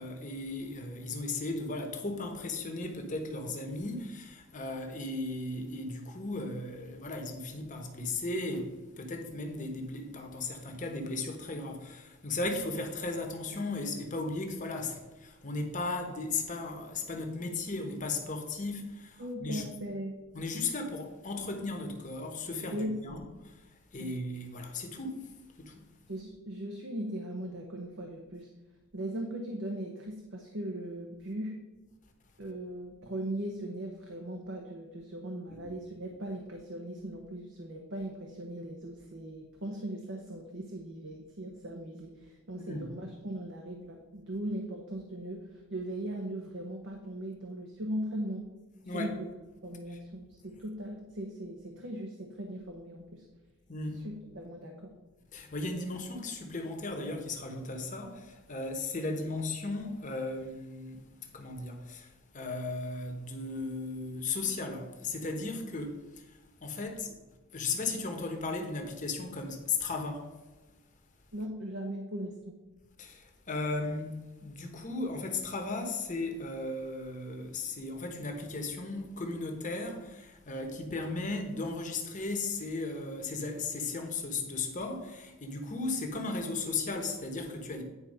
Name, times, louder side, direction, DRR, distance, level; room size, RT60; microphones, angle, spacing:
voice 1, 0.0-19.6 20.3-25.3 25.6-25.8 35.5-35.6 42.6-42.9 48.9-49.2 49.9-50.0 53.7-54.0 55.3-67.2 67.5-70.3 73.0-87.8, left 3 dB, 35° left, 1.1 m, -36 dB
voice 2, 19.2-20.1 22.7-23.2 24.0-24.1 26.1-28.5 28.9-31.6 32.4-48.5 48.9-49.3 49.6-53.2 54.0-54.9 71.3-72.5, right 1 dB, 55° right, 0.9 m, -39 dB
9.7 x 4.2 x 5.4 m
head